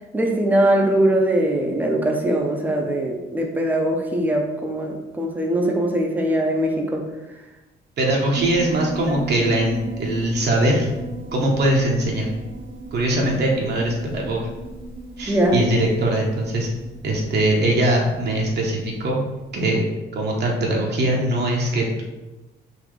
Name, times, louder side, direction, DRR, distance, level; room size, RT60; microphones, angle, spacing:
voice 1, 0.1-7.0 15.3-15.6, right 1 dB, 10° right, 1 dB, 0.6 m, -21 dB
voice 2, 8.0-10.9 11.3-12.3 12.9-14.5 15.2-16.7 17.0-19.2 19.5-19.8 20.1-22.0, right 1 dB, 55° right, -1 dB, 0.8 m, -21 dB
Piano, 8.3-19.1, right 2 dB, 90° right, 1.0 m, -35 dB
4.0 x 2.6 x 3.1 m, 1.1 s
cardioid pair, 90°, 20 cm